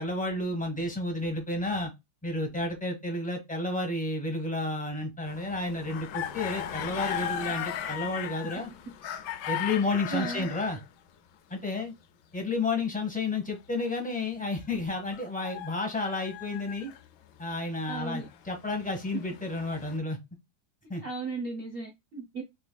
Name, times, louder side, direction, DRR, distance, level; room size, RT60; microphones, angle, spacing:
voice 1, 0.0-1.9 2.2-8.7 9.5-10.8 11.5-11.9 12.3-16.9 17.4-20.2 20.9-21.0, left 2 dB, 10° left, 0.3 m, -31 dB
sound 1, 5.3-10.8 15.1-17.1 17.9-20.0, left 10 dB, 75° left, 1.0 m, -37 dB
voice 2, 9.9-10.5 17.9-18.3 21.0-22.4, right 4 dB, 85° right, 0.5 m, -36 dB
4.4 x 2.9 x 2.2 m
omnidirectional pair, 2.2 m